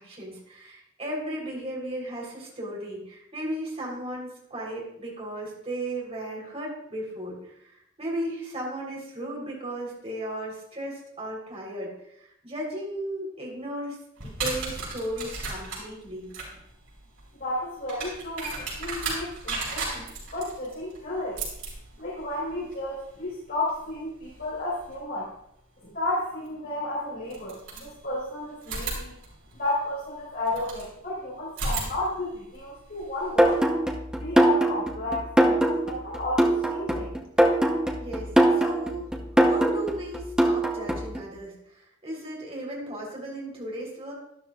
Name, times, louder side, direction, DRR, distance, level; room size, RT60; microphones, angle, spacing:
voice 1, 0.0-11.9 12.2-14.0 14.2-16.3 38.0-39.1 39.4-44.1, right 1 dB, 30° right, -3 dB, 3.6 m, -35 dB
sound 1, 14.2-25.0 26.5-26.6 27.3-28.2 28.6-30.9 31.5-33.5, right 3 dB, 75° right, 4.8 m, -36 dB
voice 2, 17.4-21.4 22.0-25.3 25.8-29.2 29.5-33.6 34.2-37.1, left 1 dB, 50° left, -8 dB, 4.0 m, -32 dB
sound 2, 33.4-41.2, right 1 dB, 5° right, 0.8 m, -22 dB
12.5 x 11.5 x 2.4 m, 0.76 s
head